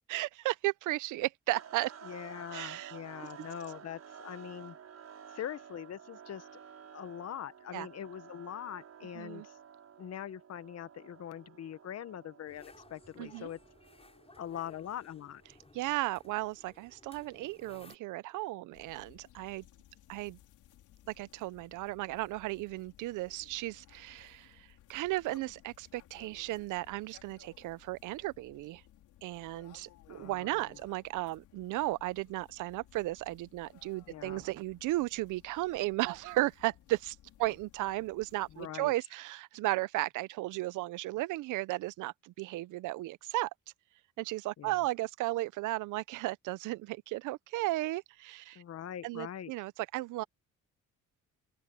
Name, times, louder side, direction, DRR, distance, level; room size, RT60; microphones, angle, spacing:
voice 1, 0.1-1.9 2.5-2.9 7.7-7.9 9.2-9.5 13.2-13.5 15.7-19.6 20.1-20.4 21.2-28.8 29.2-43.5 44.2-48.6 49.0-50.2, right 18 dB, 90° right, 0.6 m, -35 dB
sound 1, 1.5-15.6, right 7 dB, 55° right, 6.0 m, -52 dB
voice 2, 2.0-4.8 5.3-6.5 6.9-9.6 10.0-13.6 14.4-15.4 30.1-30.7 34.1-34.4 38.5-38.9 44.6-44.8 48.5-49.5, left 10 dB, 55° left, 1.1 m, -43 dB
sound 2, 12.5-18.0, left 3 dB, 20° left, 6.0 m, -59 dB
sound 3, 18.7-38.7, left 13 dB, 85° left, 4.4 m, -60 dB
open air
cardioid pair, 90°, 30 cm